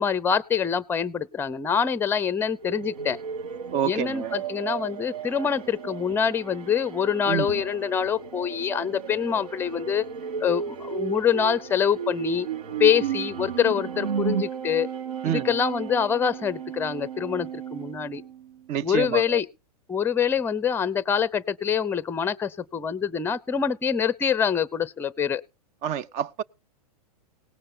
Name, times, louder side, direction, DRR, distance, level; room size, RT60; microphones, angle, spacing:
voice 1, 0.0-3.2 3.8-10.1 10.4-12.5 12.8-14.9 15.2-18.2 18.8-19.5 19.9-25.4, left 7 dB, 10° left, 0.7 m, -25 dB
sound 1, 2.5-18.8, right 7 dB, 75° right, 1.5 m, -40 dB
sound 2, 2.6-6.3 7.5-14.4, right 7 dB, 90° right, 0.6 m, -34 dB
voice 2, 3.7-4.3 7.3-7.5 15.2-15.4 18.7-19.4 25.8-26.4, right 9 dB, 35° right, 0.6 m, -27 dB
18.0 x 6.5 x 5.5 m
hypercardioid pair, 115°, 20 cm